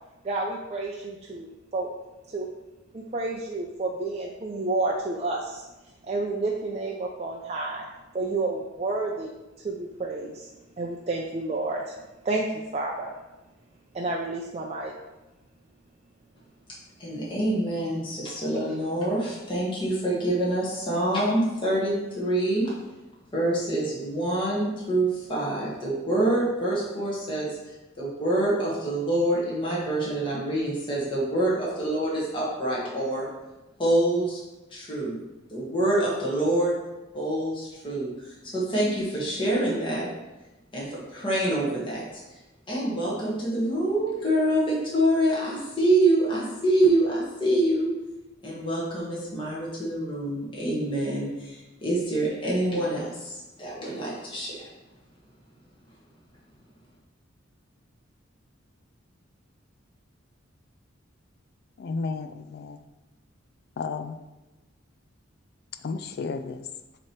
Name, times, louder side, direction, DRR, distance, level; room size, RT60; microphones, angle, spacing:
voice 1, 0.2-1.9 2.3-2.5 2.9-5.6 6.0-7.8 8.1-9.3 9.6-10.5 10.8-12.0 12.2-13.1 13.9-14.9, right 2 dB, 30° right, -2 dB, 0.5 m, -30 dB
voice 2, 17.0-22.7 23.3-33.3 33.8-34.4 34.7-35.2 35.5-36.7 37.1-40.1 40.7-42.4 42.7-47.9 48.4-54.7, right 1 dB, 25° left, -6 dB, 1.5 m, -26 dB
voice 3, 61.8-62.8 63.8-64.2 65.7-66.7, left 4 dB, 50° left, 9 dB, 0.3 m, -33 dB
8.7 x 3.0 x 4.5 m, 1.1 s
head